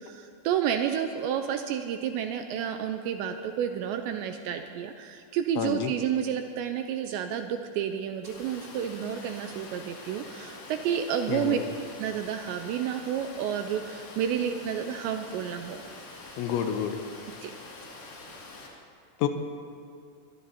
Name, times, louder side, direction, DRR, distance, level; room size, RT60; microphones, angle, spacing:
voice 1, 0.0-11.6 12.0-15.8 17.4-17.5, right 9 dB, 85° right, 6 dB, 2.7 m, -30 dB
voice 2, 5.6-5.9 11.3-11.7 16.4-17.0 19.2-19.3, left 9 dB, 80° left, 6 dB, 3.0 m, -29 dB
Water, 8.2-18.7, left 3 dB, 55° left, 3.8 m, -45 dB
23.0 x 21.0 x 2.9 m, 2.5 s
omnidirectional pair, 5.6 m